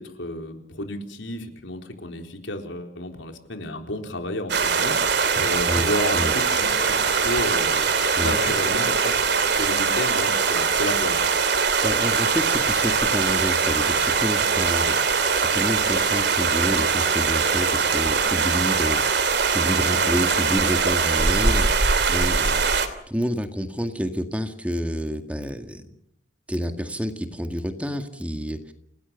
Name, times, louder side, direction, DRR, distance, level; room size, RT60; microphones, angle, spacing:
voice 1, 0.0-7.9 8.2-11.4 19.9-20.4, left 1 dB, 85° left, 4 dB, 4.1 m, -32 dB
sound 1, 4.5-22.9, right 5 dB, 65° right, 2.9 m, -22 dB
sound 2, 6.2-18.2, left 3 dB, 45° left, 4.2 m, -40 dB
voice 2, 11.8-25.8 26.5-28.7, equal, 5° right, 6 dB, 2.0 m, -29 dB
29.0 x 19.0 x 7.2 m, 0.72 s
head